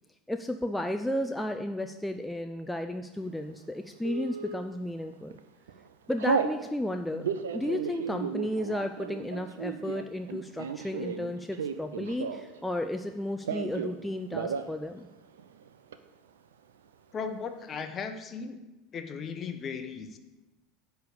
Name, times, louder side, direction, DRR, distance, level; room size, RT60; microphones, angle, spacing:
voice 1, 0.3-5.4 6.1-7.3 7.5-15.1, left 1 dB, 5° left, 5 dB, 0.4 m, -33 dB
Telephone, 4.0-4.6 5.1-5.4 5.7-6.6 7.1-12.6 12.9-14.0 14.3-14.7 15.0-15.1 15.4-16.0, right 6 dB, 75° right, 0.5 m, -33 dB
voice 2, 17.1-18.6 18.9-20.2, left 5 dB, 35° left, 7 dB, 0.9 m, -36 dB
10.0 x 3.4 x 6.7 m, 1.1 s
hypercardioid pair, 80°, 0 cm